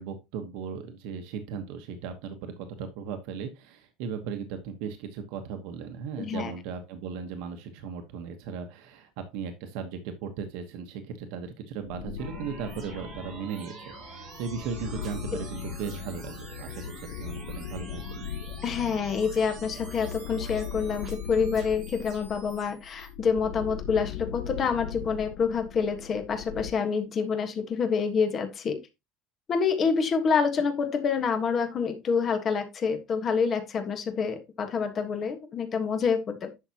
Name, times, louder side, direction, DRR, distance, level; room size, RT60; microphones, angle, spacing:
voice 1, 0.0-18.3, right 6 dB, 65° right, 7 dB, 1.2 m, -37 dB
voice 2, 6.2-6.5 18.6-28.8 29.5-36.5, left 5 dB, 25° left, 7 dB, 1.5 m, -27 dB
sound 1, 11.8-13.6 14.2-26.7, left 8 dB, 70° left, 0.7 m, -39 dB
sound 2, 12.2-23.1, right 3 dB, 25° right, 3.5 m, -46 dB
11.0 x 7.0 x 2.9 m, 0.25 s
cardioid pair, 175°, 0 cm